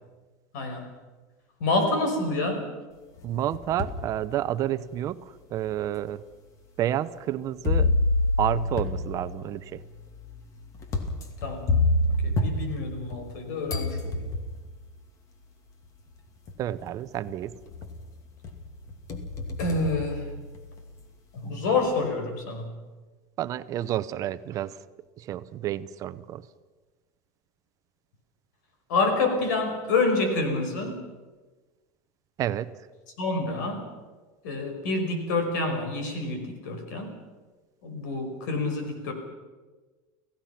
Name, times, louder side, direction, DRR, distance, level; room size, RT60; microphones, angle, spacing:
voice 1, 1.6-2.7 11.4-11.7 12.2-14.3 19.6-20.2 21.3-22.7 28.9-31.0 33.2-33.8 34.4-37.1 37.8-39.1, left 3 dB, 90° left, 5 dB, 5.5 m, -27 dB
sound 1, 3.2-4.1 4.7-4.8 5.7-5.8 7.6-13.4 13.7-14.7 15.9-16.0 16.5-16.9 17.3-18.1 18.4-20.8, left 2 dB, 35° left, 2.5 m, -28 dB
voice 2, 3.2-5.2 5.5-6.2 6.8-7.9 8.4-9.8 16.6-17.5 23.4-24.8 25.2-26.4 32.4-32.7, right 12 dB, 35° right, 14 dB, 0.7 m, -30 dB
29.5 x 16.5 x 5.9 m, 1.3 s
supercardioid pair, 155°, 10 cm